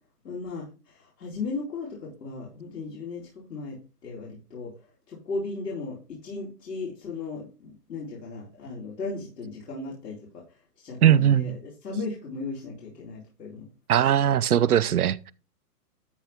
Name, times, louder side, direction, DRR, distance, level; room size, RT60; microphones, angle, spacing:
voice 1, 0.2-4.7 5.1-6.0 6.2-10.2 10.8-13.7, left 3 dB, 80° left, 4.2 m, -36 dB
voice 2, 11.0-11.6 13.9-15.3, right 10 dB, 65° right, 0.7 m, -20 dB
13.0 x 4.5 x 3.5 m
hypercardioid pair, 180°, 48 cm